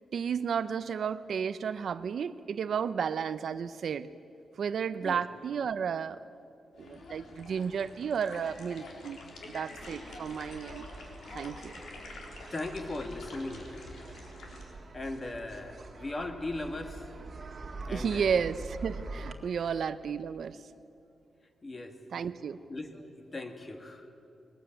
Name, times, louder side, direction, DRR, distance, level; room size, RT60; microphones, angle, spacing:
voice 1, 0.1-4.1 4.6-6.2 6.8-9.2 9.5-10.9 11.3-11.8 17.9-20.6 22.1-22.6, right 7 dB, 60° right, 13 dB, 0.6 m, -32 dB
sound 1, 6.8-14.6, left 2 dB, 70° left, 3.7 m, -47 dB
sound 2, 9.8-19.3, right 3 dB, 35° right, 1.9 m, -45 dB
voice 2, 12.5-13.7 14.9-17.1 17.8-18.5 19.6-19.7 21.6-22.0 22.7-24.1, left 2 dB, 25° left, 6 dB, 1.9 m, -38 dB
22.0 x 19.5 x 9.0 m, 2.6 s
wide cardioid pair, 150°, 0 cm